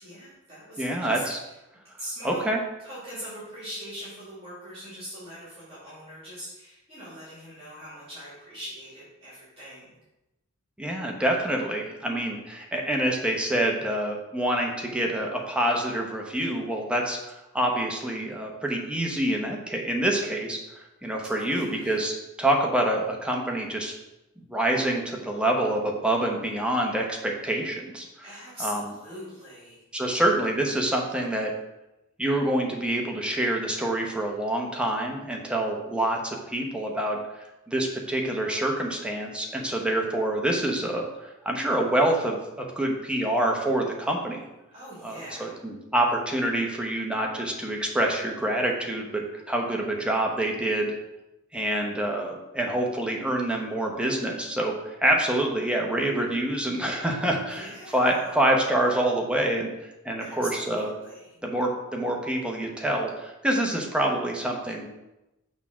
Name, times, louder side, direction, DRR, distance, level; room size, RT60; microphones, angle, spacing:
voice 1, 0.0-1.5 2.0-2.4 2.8-10.0 21.3-22.0 28.2-29.8 44.7-45.6 57.5-58.4 60.2-61.4, equal, 25° right, -9 dB, 2.6 m, -41 dB
voice 2, 0.8-1.4 2.2-2.6 10.8-23.9 24.4-28.0 28.6-28.9 29.9-31.5 32.2-37.2 37.7-44.5 45.0-50.9 51.5-59.7 60.0-60.9 61.4-64.9, right 1 dB, 5° right, 0 dB, 0.9 m, -26 dB
6.5 x 3.7 x 6.0 m, 0.95 s
head